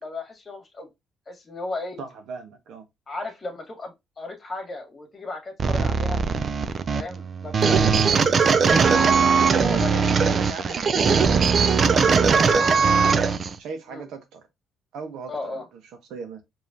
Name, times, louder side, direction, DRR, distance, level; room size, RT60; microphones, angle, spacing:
voice 1, 0.0-0.9 1.3-2.0 3.1-6.2 6.9-8.3 9.1-10.2 13.9-14.1 15.3-15.6, left 2 dB, 35° left, 1.7 m, -35 dB
voice 2, 2.0-2.9 9.6-13.0 13.6-14.4 14.9-15.6 16.1-16.4, right 5 dB, 85° right, 1.1 m, -38 dB
sound 1, 5.6-13.5, right 5 dB, 50° right, 0.5 m, -20 dB
5.2 x 3.0 x 2.8 m
cardioid pair, 90°, 0 cm